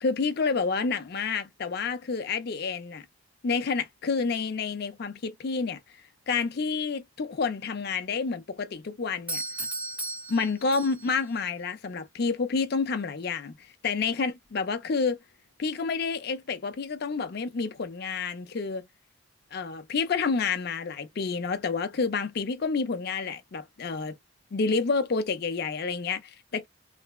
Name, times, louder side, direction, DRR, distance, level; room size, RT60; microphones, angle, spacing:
voice 1, 0.0-3.1 3.4-5.8 6.3-9.4 10.3-13.6 13.8-15.2 15.6-18.8 19.5-24.2 24.5-26.7, left 4 dB, 50° left, 0.4 m, -29 dB
Doorbell, 9.3-11.3, right 2 dB, 5° right, 0.6 m, -35 dB
3.2 x 2.0 x 2.2 m
head